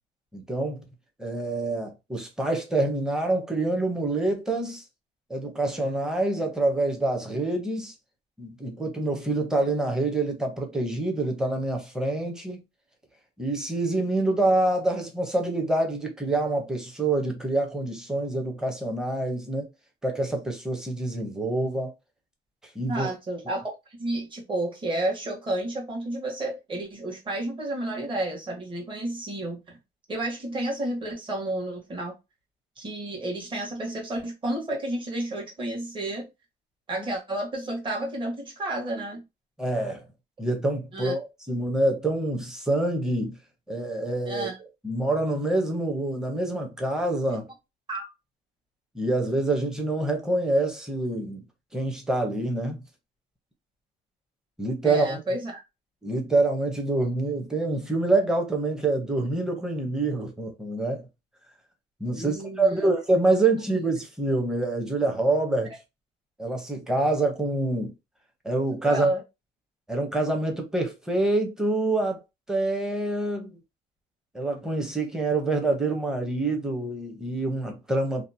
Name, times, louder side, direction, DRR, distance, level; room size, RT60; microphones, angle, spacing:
voice 1, 0.3-0.8 1.2-4.8 5.3-7.9 8.4-12.6 13.4-19.7 20.0-21.9 22.7-23.1 39.6-40.0 40.4-43.4 43.7-44.5 44.8-47.5 48.9-51.4 51.7-52.8 54.6-55.2 56.0-61.0 62.0-65.7 66.4-67.9 68.4-69.1 69.9-72.2 72.5-73.5 74.3-78.3, right 2 dB, 5° right, 0.7 m, -26 dB
voice 2, 22.8-29.8 30.1-32.1 32.8-36.3 36.9-39.2 40.9-41.2 44.3-44.6 47.9-48.1 54.8-55.6 62.1-62.9 68.8-69.2, right 1 dB, 30° right, 1.2 m, -31 dB
2.8 x 2.1 x 2.6 m
cardioid pair, 110°, 17 cm